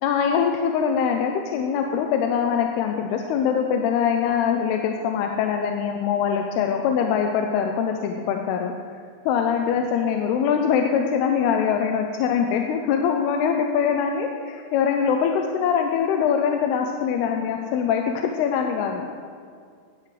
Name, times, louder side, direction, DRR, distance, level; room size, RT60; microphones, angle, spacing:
voice 1, 0.0-8.7 9.3-19.2, left 7 dB, 85° left, 3 dB, 2.6 m, -23 dB
15.5 x 12.0 x 3.3 m, 2.1 s
omnidirectional pair, 4.7 m